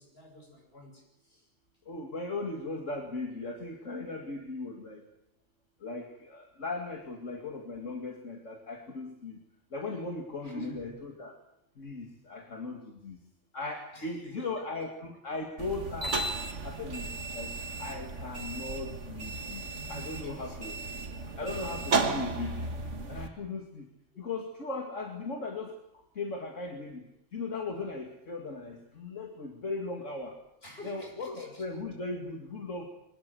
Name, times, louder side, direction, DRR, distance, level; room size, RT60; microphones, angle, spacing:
voice 1, 0.0-1.5 10.4-11.0 13.9-14.6 18.7-18.8 19.7-20.6 20.9-21.0 24.1-24.3 30.6-31.6, equal, 50° left, 2 dB, 8.0 m, -49 dB
voice 2, 1.9-5.0 5.8-9.4 9.7-11.4 11.8-13.2 13.5-16.3 16.6-17.5 17.8-20.8 21.4-22.7 23.1-23.9 24.2-30.4 30.8-32.9, left 3 dB, 75° left, 2 dB, 2.7 m, -38 dB
sound 1, 15.6-23.3, right 3 dB, 70° right, 2.1 m, -34 dB
24.0 x 21.0 x 7.8 m, 0.81 s
omnidirectional pair, 1.3 m